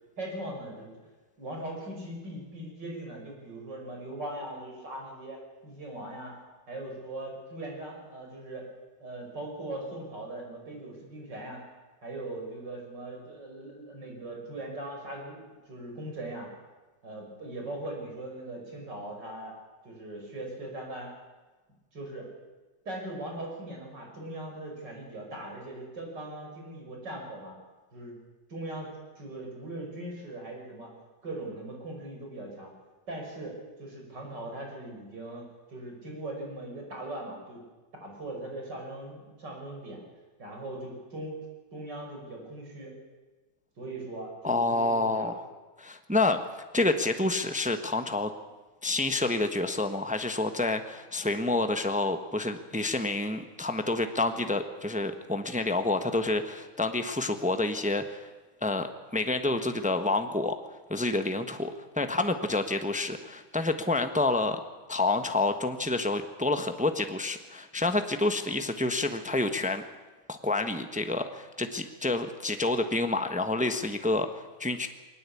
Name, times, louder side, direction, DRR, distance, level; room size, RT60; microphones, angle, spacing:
voice 1, 0.2-0.9 1.4-5.4 5.6-6.3 6.7-8.7 9.0-11.6 12.0-15.4 15.7-16.5 17.0-19.5 19.8-21.1 21.9-22.3 22.9-27.5 27.9-28.2 28.5-30.9 31.2-32.7 33.1-37.6 38.0-40.0 40.4-41.4 41.7-42.9 43.8-45.3 46.1-46.3, right 1 dB, 55° right, 1 dB, 6.3 m, -40 dB
voice 2, 44.4-45.4 45.8-46.4 46.7-48.3 48.8-58.3 58.6-60.6 60.9-64.6 64.9-69.9 70.3-74.9, left 2 dB, 5° right, 8 dB, 0.7 m, -28 dB
21.5 x 18.5 x 8.5 m, 1.2 s
omnidirectional pair, 2.2 m